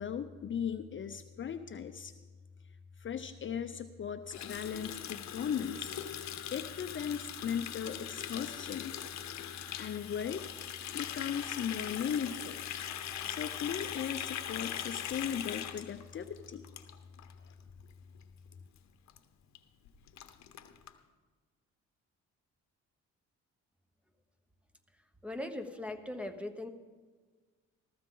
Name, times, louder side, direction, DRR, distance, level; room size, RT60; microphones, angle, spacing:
voice 1, 0.0-2.1 3.0-6.0 6.5-8.9 9.8-10.4 10.9-12.6 13.2-16.6, left 8 dB, 40° left, 10 dB, 0.6 m, -37 dB
Water tap faucet, 4.3-17.3 17.6-17.8 18.1-18.5 18.8-18.9 19.1-19.2 19.5-19.6 19.8-20.9, left 10 dB, 65° left, 0.9 m, -41 dB
voice 2, 25.2-26.7, left 1 dB, 5° right, 8 dB, 1.1 m, -39 dB
14.5 x 14.0 x 3.8 m, 1.4 s
cardioid pair, 90°, 30 cm